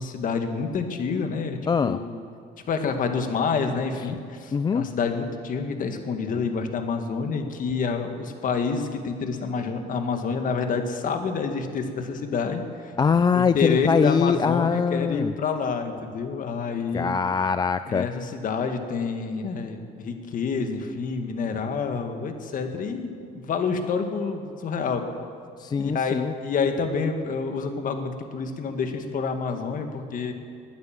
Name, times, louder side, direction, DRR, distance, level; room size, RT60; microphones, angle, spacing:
voice 1, 0.0-2.1 2.7-12.6 13.3-17.1 17.9-25.1 25.8-30.3, left 5 dB, 50° left, 6 dB, 1.8 m, -28 dB
voice 2, 1.7-2.0 4.1-4.2 4.5-4.9 13.0-15.3 16.9-18.1 25.6-26.3, left 6 dB, 25° left, 12 dB, 0.4 m, -23 dB
20.5 x 9.5 x 7.5 m, 2.3 s
cardioid pair, 110°, 17 cm